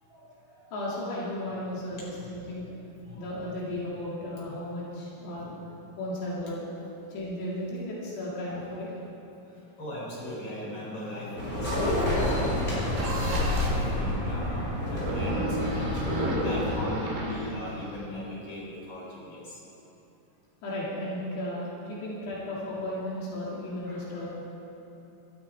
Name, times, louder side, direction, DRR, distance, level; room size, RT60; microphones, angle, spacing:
voice 1, 0.1-0.7 2.0-2.3 3.0-3.2 5.5-5.6 6.1-7.1 8.5-8.8 9.5-19.6 23.8-24.4, equal, 25° left, -5 dB, 5.0 m, -40 dB
voice 2, 0.7-2.7 3.2-5.6 6.0-6.7 7.1-9.0 20.6-24.4, left 1 dB, 70° left, -6 dB, 4.5 m, -35 dB
sound 1, 11.4-16.8, left 1 dB, 10° left, 4.7 m, -28 dB
sound 2, 13.0-13.9 15.0-18.1, right 1 dB, 75° right, 4.6 m, -33 dB
24.0 x 13.0 x 4.6 m, 3.0 s
omnidirectional pair, 5.1 m